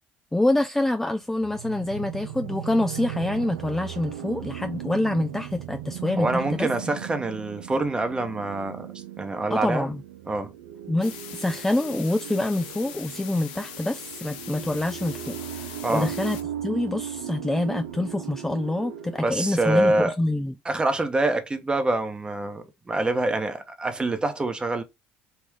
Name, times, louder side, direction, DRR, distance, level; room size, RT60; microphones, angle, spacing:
voice 1, 0.3-6.7 9.5-10.0 10.9-20.5, left 1 dB, 10° left, 0.3 m, -26 dB
sound 1, 1.3-20.0, right 11 dB, 90° right, 0.4 m, -37 dB
voice 2, 6.2-8.9 9.2-9.9 10.3-10.5 15.8-16.1 19.2-20.1 20.6-24.8, right 2 dB, 20° right, 0.9 m, -25 dB
sound 2, 11.0-16.4, left 9 dB, 90° left, 0.5 m, -41 dB
3.6 x 2.3 x 3.2 m
hypercardioid pair, 70°, 5 cm